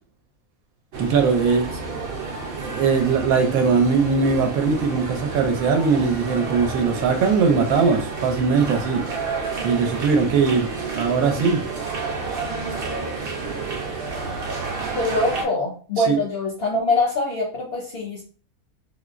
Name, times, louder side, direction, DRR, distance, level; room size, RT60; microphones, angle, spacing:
sound 1, 0.9-15.5, right 4 dB, 60° right, 0.6 m, -30 dB
voice 1, 1.0-1.7 2.6-9.0 9.6-10.7 11.0-11.6 16.0-16.2, right 5 dB, 75° right, 5 dB, 1.0 m, -20 dB
voice 2, 15.0-18.2, left 2 dB, 60° left, -2 dB, 0.6 m, -23 dB
3.4 x 2.0 x 2.4 m, 0.41 s
omnidirectional pair, 1.6 m